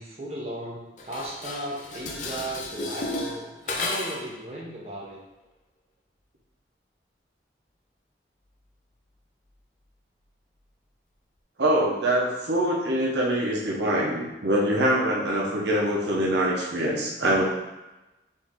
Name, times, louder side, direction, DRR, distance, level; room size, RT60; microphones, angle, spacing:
voice 1, 0.0-5.2, right 1 dB, 35° right, -4 dB, 0.8 m, -36 dB
Dishes pots and pans, 1.0-4.3, left 3 dB, 45° left, 0.5 m, -33 dB
voice 2, 11.6-17.4, right 1 dB, 80° right, -2 dB, 0.9 m, -24 dB
4.3 x 3.1 x 3.7 m, 1.0 s
head